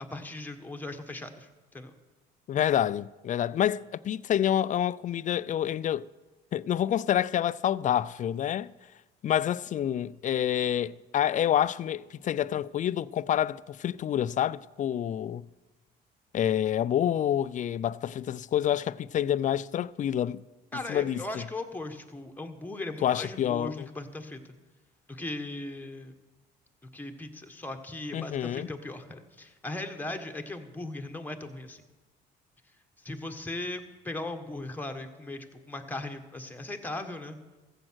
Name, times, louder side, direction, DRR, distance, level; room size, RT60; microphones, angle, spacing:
voice 1, 0.1-1.9 20.7-24.5 25.1-26.1 26.9-31.8 33.0-37.4, left 2 dB, 10° left, 1.3 m, -38 dB
voice 2, 2.5-6.1 6.5-8.7 9.2-15.5 16.3-20.4 20.7-21.4 23.0-23.9 28.1-28.7, left 10 dB, 40° left, 0.4 m, -28 dB
14.5 x 7.5 x 6.3 m
supercardioid pair, 75°, 20 cm